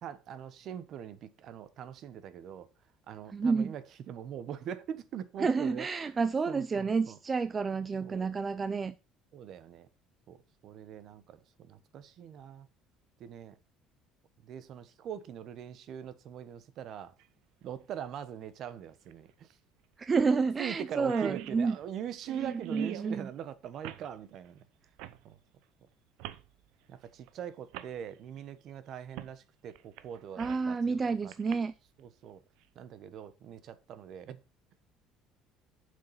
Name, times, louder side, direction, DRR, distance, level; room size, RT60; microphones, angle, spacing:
voice 1, 0.0-2.7 3.1-6.1 6.5-7.2 8.0-8.3 9.3-9.9 10.3-12.7 13.2-13.6 14.4-17.1 17.6-19.5 20.6-24.6 25.2-25.4 26.9-31.3 32.0-32.4 32.7-34.4, right 9 dB, 50° right, 1.1 m, -42 dB
voice 2, 3.3-3.7 5.4-8.9 20.0-21.8 22.3-23.3 30.4-31.7, right 4 dB, 20° right, 0.4 m, -30 dB
sound 1, 17.2-17.3 19.1-19.2 19.5-19.6 20.1-20.4 20.6-20.7 20.9-23.1 23.8-24.1 25.0-25.2 26.2-26.5 27.3-27.4 27.7-27.9 29.2-29.3 29.8-30.7 31.3-31.5, right 16 dB, 80° right, 0.8 m, -42 dB
7.5 x 6.5 x 5.7 m
cardioid pair, 140°, 0 cm